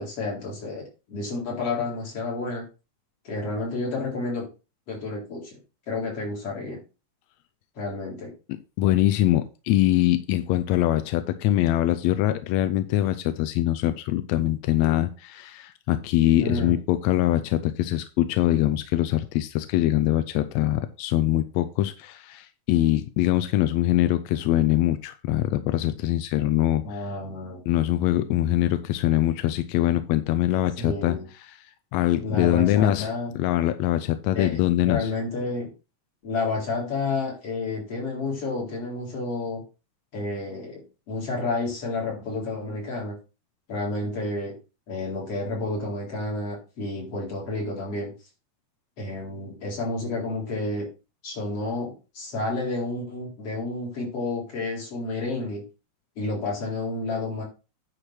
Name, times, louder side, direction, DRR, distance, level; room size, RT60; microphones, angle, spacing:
voice 1, 0.0-2.6 3.2-4.5 4.9-5.6 5.9-6.8 7.8-8.3 16.4-16.8 26.8-27.6 30.8-31.3 32.2-33.3 34.3-35.7 36.2-39.6 40.1-43.1 43.7-44.5 44.9-48.1 49.0-50.9 51.2-55.6 56.2-57.4, left 3 dB, 45° left, -3 dB, 5.0 m, -30 dB
voice 2, 8.8-27.0 27.7-31.1 31.9-33.1 33.3-35.1, left 13 dB, 80° left, 11 dB, 1.7 m, -23 dB
9.9 x 4.5 x 6.2 m, 0.32 s
omnidirectional pair, 3.6 m